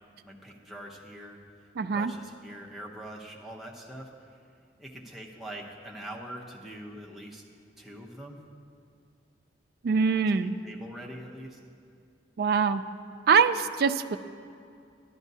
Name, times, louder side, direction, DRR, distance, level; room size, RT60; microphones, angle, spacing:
voice 1, 0.2-4.1 4.8-7.4 7.8-8.4 10.3-10.4 10.6-11.6, right 1 dB, ahead, -3 dB, 0.8 m, -43 dB
voice 2, 1.8-2.1 9.8-10.5 12.4-12.8 13.3-14.2, right 5 dB, 60° right, 11 dB, 0.3 m, -23 dB
12.0 x 11.5 x 2.7 m, 2.4 s
head